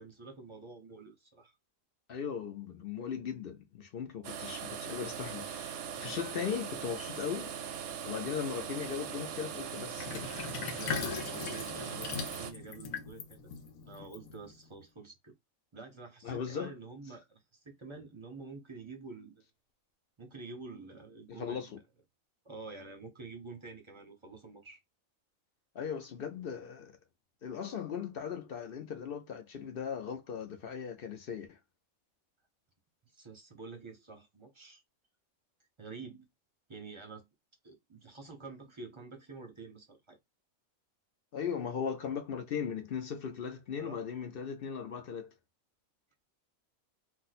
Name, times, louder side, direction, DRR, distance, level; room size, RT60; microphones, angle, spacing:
voice 1, 0.0-1.5 8.0-8.3 10.7-13.5 13.8-15.4 15.7-19.4 20.2-21.7 22.4-24.8 33.1-34.8 35.8-36.3 36.7-37.3 37.6-40.2 43.8-44.0, right 4 dB, 30° right, 0.6 m, -48 dB
voice 2, 2.1-7.5 8.0-10.3 16.2-16.7 21.4-21.8 25.7-27.0 27.4-31.6 41.3-45.3, left 7 dB, 55° left, 0.7 m, -38 dB
sound 1, 4.2-12.5, right 8 dB, 65° right, 0.8 m, -40 dB
Sink (filling or washing), 10.0-14.7, left 6 dB, 85° left, 1.1 m, -40 dB
2.5 x 2.4 x 4.1 m
omnidirectional pair, 1.4 m